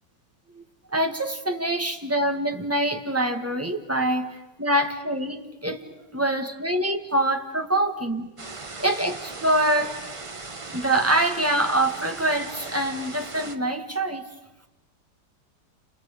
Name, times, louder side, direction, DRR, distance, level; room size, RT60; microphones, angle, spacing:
voice 1, 0.9-5.8 6.1-8.3 8.8-10.0 10.7-14.2, right 1 dB, 10° right, 4 dB, 1.4 m, -25 dB
sound 1, 8.4-13.6, right 3 dB, 25° right, 0.7 m, -38 dB
30.0 x 28.5 x 5.1 m, 1.0 s
omnidirectional pair, 2.0 m